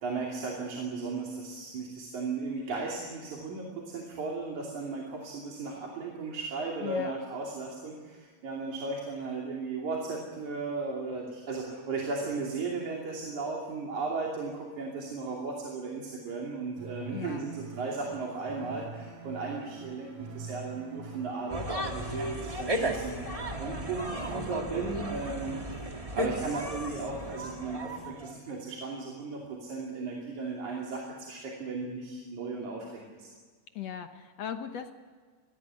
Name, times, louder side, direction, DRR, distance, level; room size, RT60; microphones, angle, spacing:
voice 1, 0.0-23.2 23.6-25.6 26.1-33.3, right 3 dB, 65° right, -2 dB, 4.2 m, -36 dB
voice 2, 6.8-7.1 17.1-17.5 33.8-34.9, left 9 dB, 65° left, 7 dB, 1.9 m, -38 dB
sound 1, 16.8-22.3, right 5 dB, 85° right, 3.9 m, -44 dB
sound 2, 21.5-28.4, right 1 dB, 15° right, 1.2 m, -34 dB
23.0 x 18.5 x 9.7 m, 1.5 s
omnidirectional pair, 3.7 m